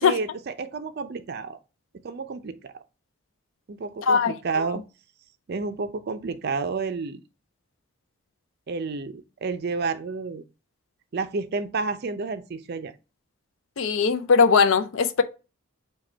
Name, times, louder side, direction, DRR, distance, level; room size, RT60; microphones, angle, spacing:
voice 1, 0.0-1.6 2.0-2.6 3.7-4.8 5.5-7.2 8.7-10.4 11.1-12.9, right 4 dB, 50° right, 0.4 m, -30 dB
voice 2, 4.0-4.6 13.8-15.2, left 5 dB, 65° left, 0.5 m, -20 dB
4.9 x 2.3 x 4.4 m
head